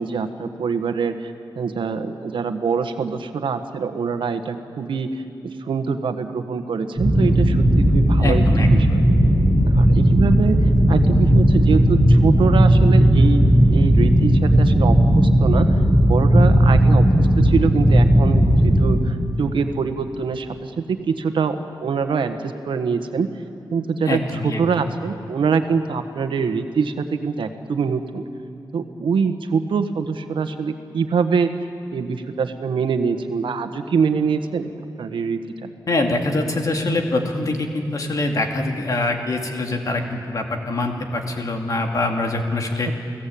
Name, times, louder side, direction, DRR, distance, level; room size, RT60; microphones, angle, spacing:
voice 1, 0.0-5.2 5.6-9.0 9.7-10.6 10.9-15.7 16.0-23.3 23.7-28.2 28.7-31.5 31.9-34.7 35.0-35.7 42.9-43.0, right 5 dB, 90° right, 7 dB, 1.6 m, -24 dB
sound 1, 7.0-18.9, equal, 10° right, 5.3 m, -15 dB
voice 2, 8.2-8.7 24.1-24.6 35.9-42.9, left 2 dB, 45° left, 3 dB, 2.5 m, -24 dB
29.5 x 17.5 x 8.7 m, 2.9 s
wide cardioid pair, 175°, 8 cm